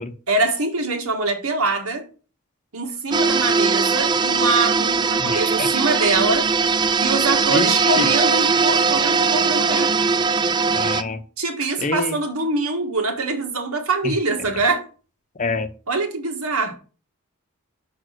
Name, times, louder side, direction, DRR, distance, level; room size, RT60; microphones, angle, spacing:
voice 1, 0.3-2.1 2.7-6.5 7.0-9.9 11.4-14.8 15.9-16.8, right 3 dB, 85° right, 1.6 m, -23 dB
sound 1, 3.1-11.0, right 5 dB, 20° right, 0.3 m, -20 dB
voice 2, 5.2-5.7 7.5-8.1 10.7-11.2 11.8-12.2 14.0-14.1 15.4-15.7, left 3 dB, 35° left, 0.7 m, -26 dB
6.3 x 4.9 x 6.5 m
head